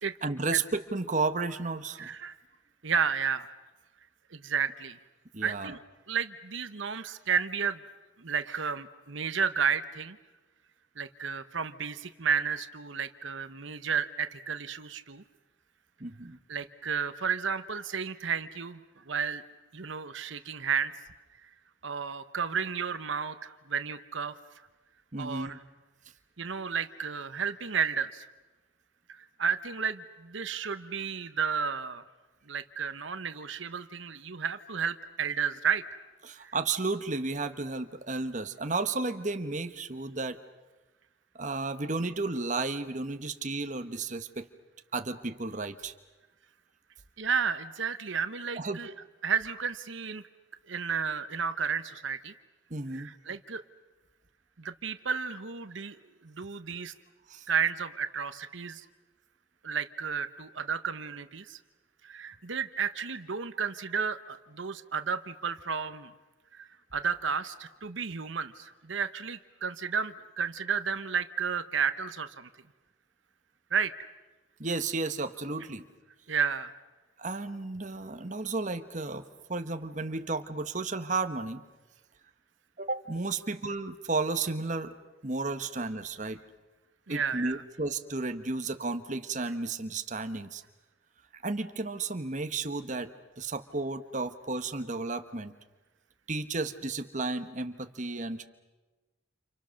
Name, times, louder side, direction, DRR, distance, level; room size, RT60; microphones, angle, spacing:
voice 1, 0.2-2.1 5.3-5.7 16.0-16.4 25.1-25.6 36.2-40.4 41.3-44.5 44.9-45.9 48.6-48.8 52.7-53.1 57.3-57.5 74.6-75.8 77.2-79.2 79.5-81.6 82.8-84.9 85.2-86.4 87.1-90.6 91.3-95.5 96.3-98.5, right 3 dB, 40° right, 8 dB, 1.2 m, -33 dB
voice 2, 2.0-2.4 2.8-3.5 4.3-5.0 5.4-5.8 6.1-7.8 8.2-10.2 11.0-15.2 16.5-19.4 19.7-20.9 21.4-21.5 21.8-24.3 25.2-25.6 26.4-28.3 29.1-32.0 32.5-36.0 36.4-36.5 47.2-48.9 49.2-50.2 50.7-52.3 52.9-53.6 54.6-56.0 56.2-56.9 57.5-58.8 59.6-61.6 62.0-66.1 66.5-72.5 73.7-73.9 76.3-76.7 87.1-87.6, right 6 dB, 75° right, 11 dB, 1.0 m, -32 dB
30.0 x 29.0 x 6.5 m, 1.2 s
head